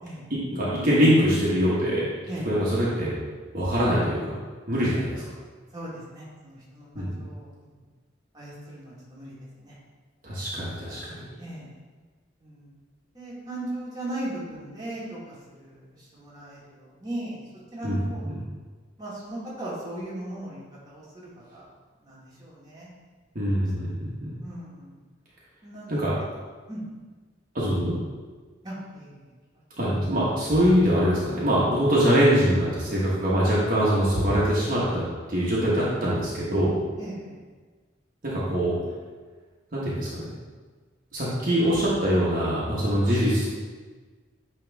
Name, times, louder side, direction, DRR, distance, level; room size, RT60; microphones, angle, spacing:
voice 1, 0.3-2.1 2.4-3.1 3.5-4.4 4.7-5.2 6.9-7.2 10.2-11.3 17.8-18.0 18.3-18.4 23.3-24.3 25.9-26.1 27.5-27.9 29.8-35.0 35.3-36.8 38.2-38.8 39.7-40.3 41.1-43.6, equal, 45° right, -8 dB, 1.3 m, -23 dB
voice 2, 5.7-7.7 8.3-9.8 11.4-11.7 12.4-12.7 13.1-17.4 17.7-18.4 19.0-21.6 22.0-22.9 24.4-24.9 25.6-25.9 26.7-26.8 28.6-29.3 37.0-37.3, right 1 dB, 20° right, -7 dB, 1.7 m, -38 dB
9.1 x 3.3 x 3.5 m, 1.4 s
head